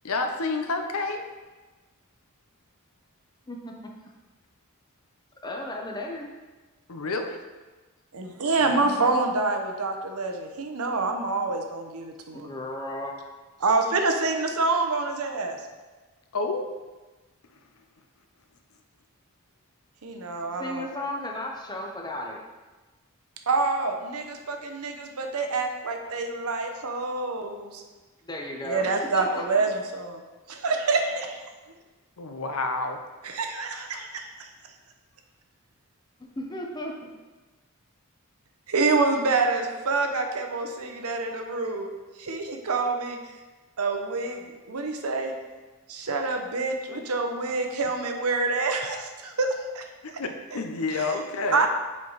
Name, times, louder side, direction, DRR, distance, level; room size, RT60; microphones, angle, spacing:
voice 1, 0.0-1.2 6.9-7.4 16.3-16.7 32.2-33.0 50.2-51.7, left 3 dB, 70° left, 5 dB, 0.7 m, -29 dB
voice 2, 3.5-3.9 5.4-6.3 8.6-9.2 12.3-13.2 20.5-22.4 28.3-29.6 36.4-37.1, left 1 dB, 20° left, 1 dB, 0.8 m, -35 dB
voice 3, 8.1-12.5 13.6-15.6 20.0-20.9 23.5-27.7 28.6-30.0 30.6-31.0 33.2-34.2 38.7-41.9 42.3-43.2 43.8-44.4 44.7-45.3 45.9-49.5 49.7-49.8 50.5-50.6 50.9-51.1 51.5-51.7, right 3 dB, 75° right, 4 dB, 0.8 m, -26 dB
7.3 x 4.6 x 4.0 m, 1.2 s
head